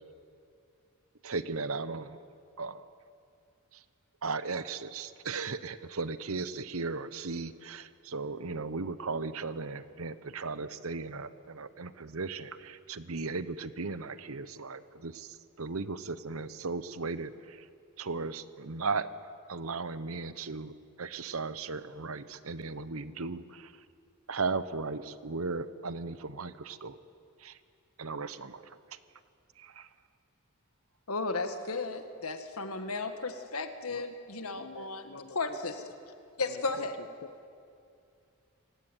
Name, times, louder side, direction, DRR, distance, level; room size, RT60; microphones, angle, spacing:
voice 1, 1.2-2.2 2.6-2.9 3.7-3.8 4.2-17.7 18.0-19.1 19.5-23.7 24.3-27.0 27.4-27.6 28.0-29.0 29.6-29.9, right 4 dB, 70° right, 14 dB, 1.0 m, -36 dB
voice 2, 31.1-35.0 35.4-36.9, left 3 dB, 80° left, 8 dB, 1.8 m, -35 dB
voice 3, 34.5-35.6 36.5-37.3, left 3 dB, 60° left, 11 dB, 1.2 m, -49 dB
27.0 x 17.0 x 9.2 m, 2.5 s
head